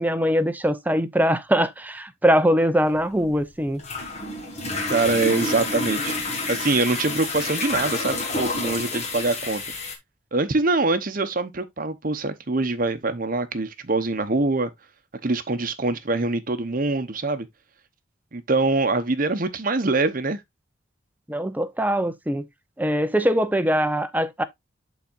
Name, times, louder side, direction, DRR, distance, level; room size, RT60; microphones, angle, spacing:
voice 1, 0.0-3.8 21.3-22.5 22.8-24.4, equal, 10° right, 0.6 m, -22 dB
sound 1, 2.9-9.9, left 2 dB, 35° left, 1.8 m, -29 dB
voice 2, 4.9-6.1 6.5-9.6 10.3-14.7 15.2-17.5 18.3-20.4, right 3 dB, 45° right, 0.9 m, -24 dB
12.0 x 4.1 x 2.5 m
head